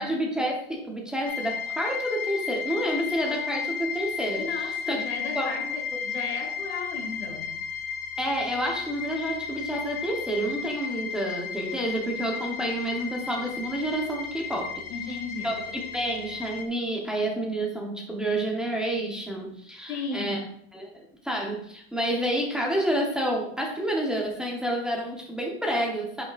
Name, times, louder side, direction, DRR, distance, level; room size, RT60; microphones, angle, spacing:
voice 1, 0.0-5.0 5.3-5.7 8.2-14.8 15.4-20.4 20.7-26.2, right 1 dB, ahead, -1 dB, 0.9 m, -29 dB
sound 1, 1.2-16.7, left 7 dB, 60° left, 1.0 m, -34 dB
voice 2, 4.4-7.6 14.9-15.6 19.9-20.4, left 4 dB, 85° left, 3 dB, 2.0 m, -35 dB
9.5 x 5.7 x 2.5 m, 0.68 s
supercardioid pair, 155°, 31 cm